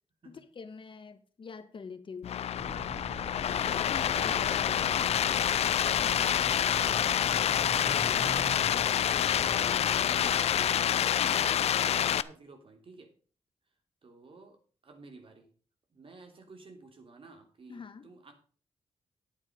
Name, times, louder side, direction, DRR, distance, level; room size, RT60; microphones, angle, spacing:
voice 1, 0.2-2.4 3.9-4.5 5.9-6.3 11.2-11.4 17.7-18.1, left 5 dB, 50° left, 1.3 m, -44 dB
sound 1, 2.2-12.2, left 10 dB, 75° left, 0.5 m, -27 dB
sound 2, 2.6-10.8, right 2 dB, 20° right, 2.7 m, -44 dB
voice 2, 3.6-5.4 6.2-8.6 9.3-13.1 14.0-14.6 14.8-15.5 15.9-18.3, right 3 dB, 55° right, 3.0 m, -51 dB
9.9 x 9.0 x 5.2 m
cardioid pair, 65°, 11 cm